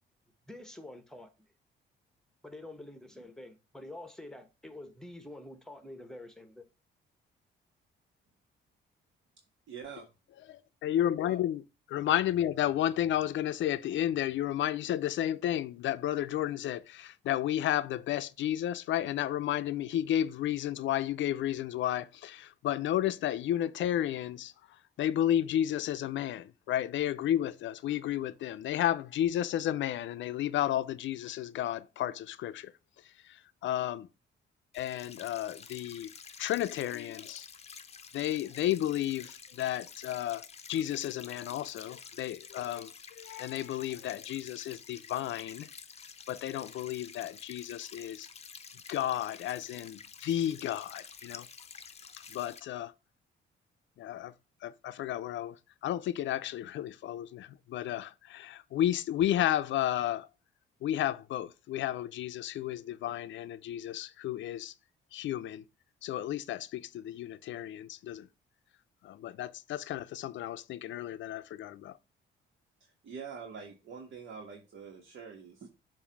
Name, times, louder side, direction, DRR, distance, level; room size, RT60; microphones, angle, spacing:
voice 1, 0.5-1.3 2.4-6.6, left 1 dB, 5° left, 1.1 m, -47 dB
voice 2, 9.7-10.1 11.3-11.4 72.8-75.7, right 6 dB, 65° right, 1.5 m, -45 dB
voice 3, 10.5-11.6 11.9-24.5 25.0-32.7 33.3-33.4 33.6-34.1 34.7-36.1 36.4-37.5 38.1-45.7 46.3-48.3 48.9-51.5 52.3-52.9 54.0-54.3 54.6-55.5 55.8-60.3 60.8-64.7 65.1-65.6 66.0-68.3 69.0-71.9, left 12 dB, 70° left, 0.5 m, -32 dB
sound 1, 34.7-52.6, left 6 dB, 35° left, 0.7 m, -50 dB
7.1 x 2.7 x 5.2 m
cardioid pair, 90°, 20 cm